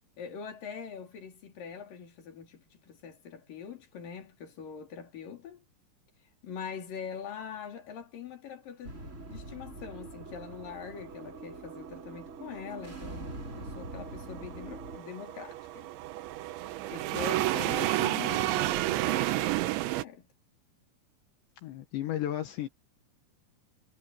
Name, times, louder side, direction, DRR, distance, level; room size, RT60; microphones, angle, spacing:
voice 1, 0.2-5.6 6.4-9.0 9.3-15.9 16.9-19.6 20.0-20.3, left 7 dB, 50° left, 5.0 m, -43 dB
sound 1, 8.8-15.0, right 2 dB, 15° right, 3.8 m, -43 dB
sound 2, 13.1-20.0, right 16 dB, 85° right, 3.4 m, -31 dB
voice 2, 21.6-22.7, left 12 dB, 75° left, 3.9 m, -33 dB
omnidirectional pair, 5.1 m